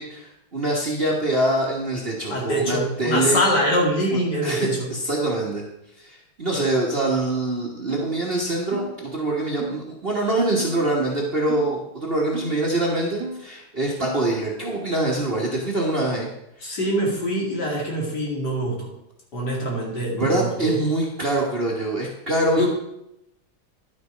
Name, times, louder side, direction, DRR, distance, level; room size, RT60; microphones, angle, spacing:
voice 1, 0.0-3.4 4.1-5.6 6.0-16.3 20.2-22.7, right 2 dB, 30° right, -2 dB, 1.4 m, -24 dB
voice 2, 2.3-4.9 16.6-18.9 19.3-20.8 22.6-22.7, equal, 55° left, -2 dB, 3.0 m, -24 dB
sound 1, 7.9-8.2 8.7-9.0 9.6-9.8 10.6-10.9 11.5-11.8 12.3-12.6 13.2-13.5 14.0-14.3, right 3 dB, 80° right, 1.6 m, -34 dB
11.0 x 6.2 x 5.1 m, 0.81 s
omnidirectional pair, 2.2 m